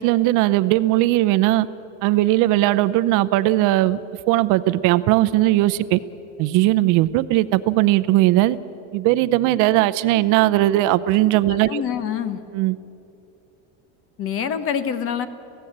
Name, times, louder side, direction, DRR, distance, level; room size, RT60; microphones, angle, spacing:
voice 1, 0.0-1.7 2.0-4.0 4.3-6.0 6.4-8.6 8.9-11.8 12.5-12.8, right 16 dB, 55° right, 14 dB, 0.7 m, -18 dB
voice 2, 11.5-12.4 14.2-15.3, left 8 dB, 35° left, 12 dB, 1.1 m, -26 dB
26.5 x 17.0 x 8.7 m, 2.7 s
cardioid pair, 175°, 38 cm